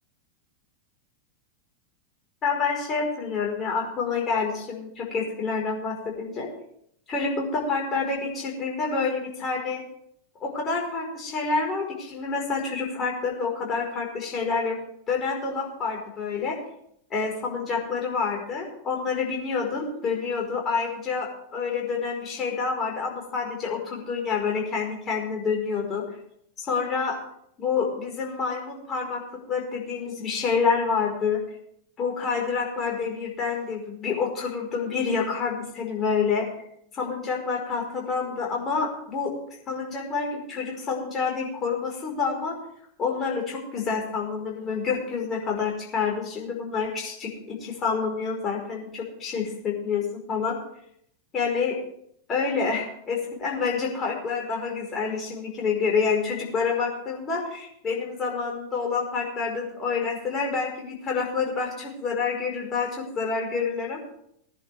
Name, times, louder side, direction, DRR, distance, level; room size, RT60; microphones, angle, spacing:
voice 1, 2.4-6.5 7.1-9.8 10.4-14.8 15.1-16.6 17.1-26.0 26.6-27.2 27.6-29.2 29.5-31.4 32.0-36.5 36.9-39.3 39.7-42.5 43.0-50.6 51.3-51.8 52.3-64.0, left 5 dB, 25° left, 0 dB, 4.8 m, -28 dB
19.5 x 10.5 x 3.6 m, 0.71 s
figure-of-eight pair, 90°, 0 cm